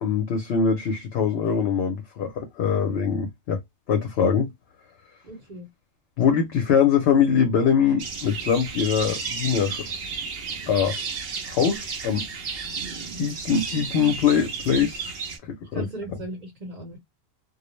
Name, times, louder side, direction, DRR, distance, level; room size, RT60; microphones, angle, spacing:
voice 1, 0.0-3.6 3.9-4.5 6.2-9.9 10.7-10.9 11.5-12.2 13.2-15.1 15.5-15.8, left 7 dB, 65° left, 0.8 m, -22 dB
voice 2, 5.2-5.7 15.7-17.0, right 1 dB, 40° right, 1.0 m, -37 dB
sound 1, 8.0-15.4, right 5 dB, 60° right, 0.8 m, -33 dB
2.4 x 2.0 x 3.0 m
omnidirectional pair, 1.3 m